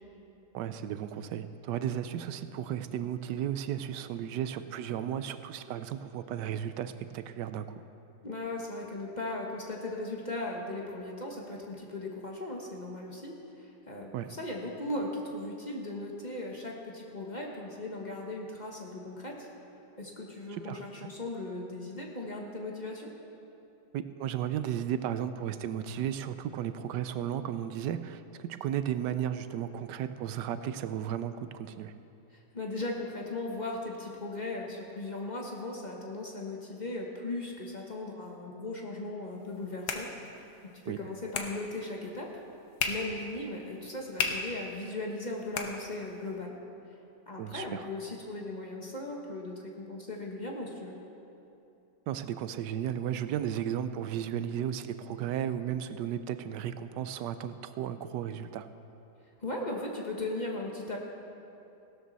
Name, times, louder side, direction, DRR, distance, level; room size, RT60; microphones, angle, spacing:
voice 1, 0.5-7.8 14.1-14.3 20.5-20.8 23.9-31.9 40.9-41.0 47.4-47.9 52.1-58.7, right 10 dB, 85° right, 11 dB, 1.2 m, -34 dB
voice 2, 8.2-19.5 20.0-23.1 32.3-42.4 42.9-46.6 47.3-51.0 59.4-61.0, left 2 dB, 30° left, -1 dB, 1.2 m, -38 dB
sound 1, 39.3-46.4, left 5 dB, 70° left, 1.5 m, -38 dB
16.5 x 12.5 x 4.1 m, 2.8 s
omnidirectional pair, 1.8 m